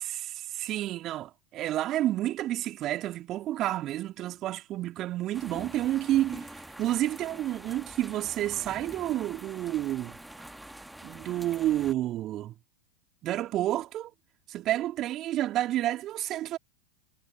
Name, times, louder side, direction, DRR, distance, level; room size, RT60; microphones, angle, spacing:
voice 1, 0.0-10.2 11.0-12.5 13.2-14.1 14.5-16.6, right 14 dB, 40° right, 2.7 m, -30 dB
sound 1, 5.3-11.9, right 1 dB, 5° right, 1.9 m, -45 dB
figure-of-eight pair, 90°, 0 cm